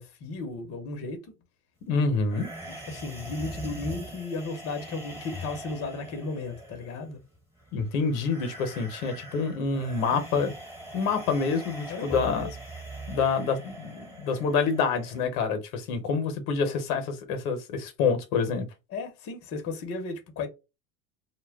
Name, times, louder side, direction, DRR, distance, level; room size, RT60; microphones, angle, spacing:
voice 1, 0.0-1.3 2.7-7.2 11.9-12.6 18.9-20.5, left 3 dB, 35° left, 0.8 m, -35 dB
voice 2, 1.9-2.5 7.7-10.5 10.9-12.5 13.1-18.7, left 5 dB, 70° left, 0.9 m, -27 dB
sound 1, 2.3-15.3, right 1 dB, 5° right, 1.2 m, -42 dB
2.2 x 2.1 x 3.4 m
hypercardioid pair, 100°, 43 cm